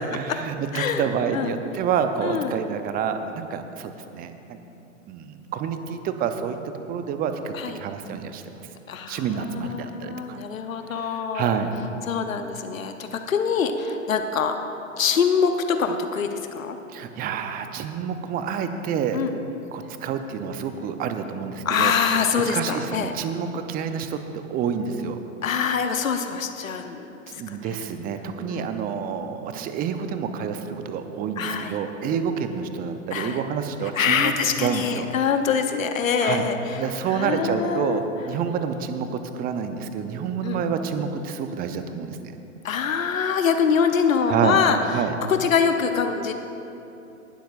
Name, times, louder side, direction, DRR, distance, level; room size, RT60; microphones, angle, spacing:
voice 1, 0.1-4.6 5.1-6.6 6.9-8.7 9.1-10.4 10.9-11.7 16.9-19.2 19.7-21.9 22.4-25.2 27.3-34.3 34.6-35.1 36.2-36.5 36.8-42.4 44.3-44.6 44.9-45.2, right 7 dB, 20° right, 8 dB, 0.7 m, -28 dB
voice 2, 2.2-2.6 7.5-7.8 8.9-11.6 12.1-14.6 15.0-16.8 19.1-19.3 21.6-23.1 25.4-27.8 28.5-28.7 31.4-31.8 33.1-33.4 33.9-36.8 37.1-38.0 40.4-40.6 42.6-46.3, left 6 dB, 75° left, 7 dB, 0.9 m, -24 dB
19.5 x 12.0 x 2.5 m, 2.9 s
figure-of-eight pair, 105°, 40 cm